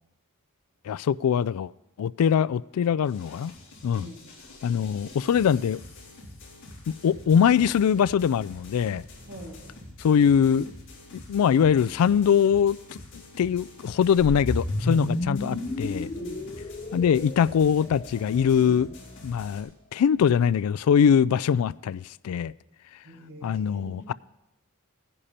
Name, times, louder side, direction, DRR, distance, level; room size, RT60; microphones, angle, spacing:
voice 1, 0.9-1.7 2.0-3.5 3.8-4.1 4.6-5.8 6.9-9.0 10.0-10.7 11.3-16.1 16.9-18.9 19.2-22.5 23.4-24.1, left 7 dB, 80° left, 0.3 m, -22 dB
sound 1, 3.0-19.6, left 2 dB, 55° left, 4.1 m, -46 dB
voice 2, 9.3-9.7 14.8-15.1 16.1-16.5 18.5-18.8 23.0-24.0, equal, 85° right, 4.8 m, -43 dB
sound 2, 14.2-18.4, left 1 dB, 30° left, 0.7 m, -31 dB
16.5 x 10.0 x 4.3 m
head